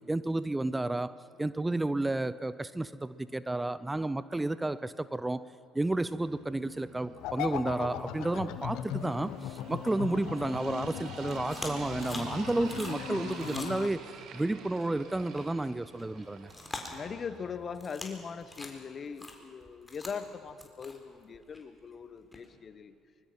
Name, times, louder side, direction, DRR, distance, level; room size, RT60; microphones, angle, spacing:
voice 1, 0.1-5.5 5.7-14.0 14.3-16.5, right 2 dB, 15° right, 16 dB, 0.6 m, -31 dB
sound 1, 6.0-17.6, right 5 dB, 60° right, 2.2 m, -47 dB
sound 2, 7.2-13.9, left 11 dB, 70° left, 1.0 m, -39 dB
sound 3, 9.0-10.7 11.0-14.3 14.7-14.9 15.3-15.5 15.7-17.4 17.7-18.2 18.4-22.5, left 2 dB, 15° left, 4.0 m, -45 dB
voice 2, 16.9-22.9, left 6 dB, 45° left, 13 dB, 1.2 m, -40 dB
24.0 x 21.0 x 5.9 m, 2.6 s
hypercardioid pair, 55°, 0 cm